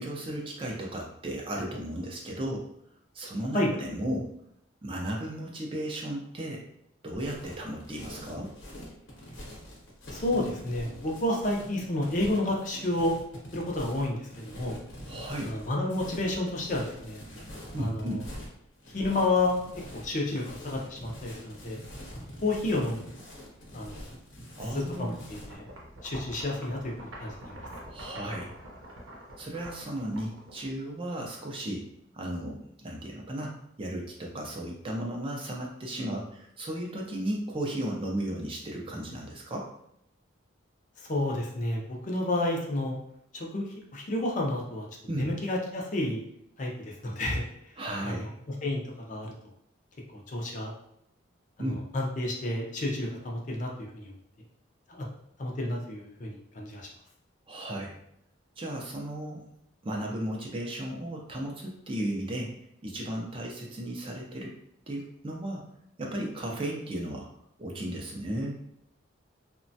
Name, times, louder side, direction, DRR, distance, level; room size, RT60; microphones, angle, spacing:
voice 1, 0.0-2.7 3.1-4.3 4.8-6.7 7.0-8.5 15.0-15.5 17.7-18.2 24.6-25.2 27.9-28.5 29.4-31.8 32.1-39.7 45.1-45.3 47.8-48.3 51.6-51.8 57.5-58.0 58.6-59.4 59.8-62.5 62.8-64.5 64.9-65.6 66.0-67.3 67.6-68.5, right 1 dB, 25° right, -1 dB, 0.4 m, -35 dB
sound 1, 7.1-25.6, equal, 70° left, 0.8 m, -45 dB
voice 2, 10.1-13.1 13.5-14.8 15.4-17.2 17.8-18.2 18.9-19.6 19.9-21.8 22.4-23.0 23.7-24.0 24.7-25.1 25.5-25.7 26.0-27.5 41.1-42.9 43.3-44.9 45.2-46.2 46.6-47.4 48.0-48.3 48.6-48.8 49.1-49.3 50.1-50.7 51.6-54.1 54.9-55.1 55.4-56.8, left 1 dB, 40° left, -1 dB, 0.5 m, -30 dB
sound 2, 24.9-31.1, right 1 dB, 80° right, 0.7 m, -46 dB
3.0 x 2.1 x 2.6 m, 0.74 s
head